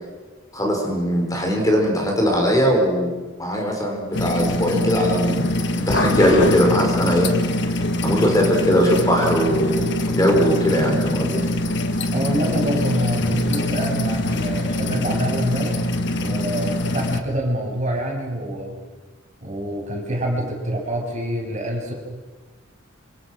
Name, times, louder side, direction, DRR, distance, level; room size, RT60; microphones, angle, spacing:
voice 1, 0.5-5.4 5.7-7.3 8.0-11.4, equal, 15° left, 1 dB, 4.7 m, -20 dB
sound 1, 4.1-17.2, left 1 dB, 60° left, 1.6 m, -23 dB
voice 2, 12.1-15.9 16.1-18.7 19.4-21.9, right 1 dB, 35° right, -1 dB, 7.4 m, -26 dB
28.0 x 27.5 x 6.3 m, 1.3 s
head